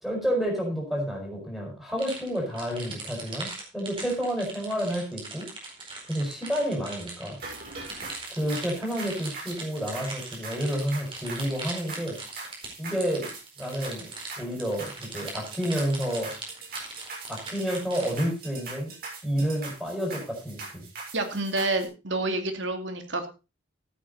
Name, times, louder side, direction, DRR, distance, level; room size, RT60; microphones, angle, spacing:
voice 1, 0.0-5.5 6.1-7.4 8.3-12.2 12.8-14.1 14.4-16.3 17.3-18.9 19.2-20.9, equal, ahead, -2 dB, 5.5 m, -30 dB
sound 1, 2.0-18.1, right 3 dB, 30° right, 4.6 m, -40 dB
sound 2, 7.4-21.9, right 3 dB, 50° right, 6.5 m, -42 dB
voice 2, 21.1-23.3, right 2 dB, 80° right, 6 dB, 2.6 m, -28 dB
15.0 x 9.1 x 4.1 m, 0.30 s
head